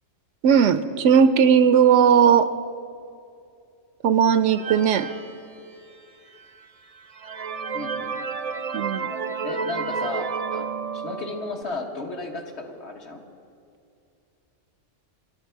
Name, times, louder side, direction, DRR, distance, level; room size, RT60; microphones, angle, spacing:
voice 1, 0.4-2.5 4.0-5.1 8.7-9.2, right 7 dB, 75° right, 12 dB, 0.9 m, -17 dB
sound 1, 4.4-6.1 6.6-6.7 7.1-11.6, right 5 dB, 40° right, 0.5 m, -31 dB
voice 2, 7.7-8.2 9.4-13.2, left 2 dB, 65° left, 1 dB, 1.6 m, -34 dB
21.5 x 12.0 x 4.5 m, 2.5 s
omnidirectional pair, 1.3 m